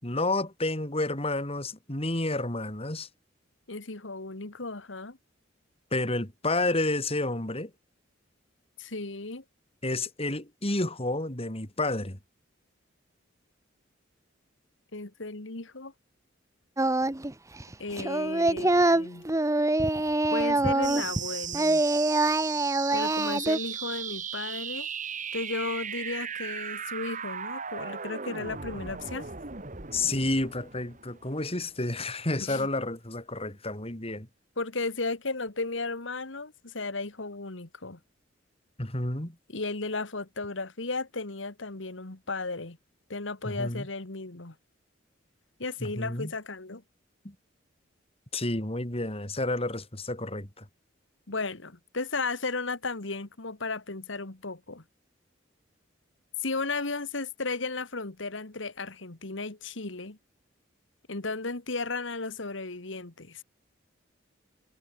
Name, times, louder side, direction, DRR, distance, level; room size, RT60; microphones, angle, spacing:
voice 1, 0.0-3.1 5.9-7.7 9.8-12.2 29.9-34.3 38.8-39.4 43.4-43.9 45.8-46.3 47.2-47.3 48.3-50.7, left 2 dB, 30° left, 4.4 m, -30 dB
voice 2, 3.7-5.2 8.8-9.4 14.9-15.9 17.8-19.3 20.3-21.8 22.9-24.9 25.3-29.3 32.4-32.7 34.6-38.0 39.5-42.8 43.1-44.6 45.6-46.8 51.3-54.8 56.4-60.2 61.1-63.4, left 3 dB, 75° left, 1.9 m, -34 dB
Singing, 16.8-17.3 17.6-21.3 21.5-23.6, right 2 dB, 15° right, 0.9 m, -25 dB
sound 1, 20.8-31.8, right 7 dB, 40° right, 2.6 m, -37 dB
head